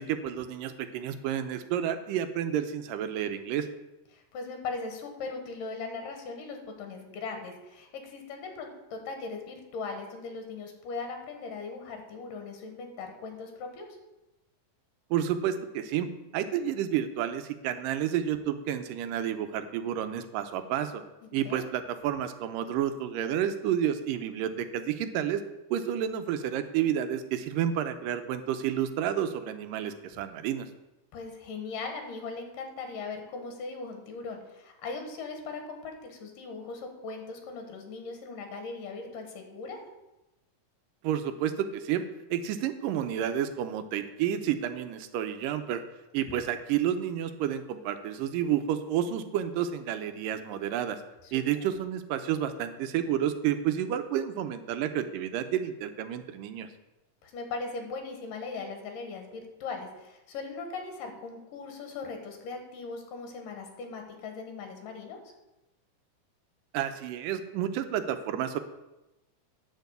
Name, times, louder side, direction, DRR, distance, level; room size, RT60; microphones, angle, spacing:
voice 1, 0.0-3.7 15.1-16.1 16.3-21.0 21.3-25.4 25.7-30.7 41.0-42.0 42.3-45.8 46.1-51.0 51.3-56.7 66.7-68.6, right 10 dB, 85° right, 9 dB, 2.4 m, -30 dB
voice 2, 4.1-13.9 21.4-21.6 31.1-39.8 46.3-46.4 51.2-51.3 57.2-65.2, left 4 dB, 80° left, 4 dB, 3.2 m, -39 dB
10.5 x 4.5 x 8.0 m, 0.98 s
omnidirectional pair, 3.8 m